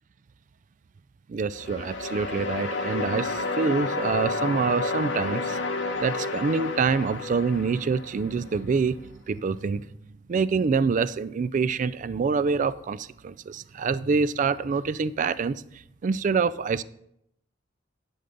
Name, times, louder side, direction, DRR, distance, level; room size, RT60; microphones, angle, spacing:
voice 1, 1.3-5.6 6.0-9.0 9.3-9.9 10.3-15.6 16.0-16.8, right 5 dB, 40° right, 0.3 m, -26 dB
sound 1, 1.5-8.5, left 3 dB, 70° left, 1.1 m, -30 dB
11.0 x 7.0 x 3.9 m
head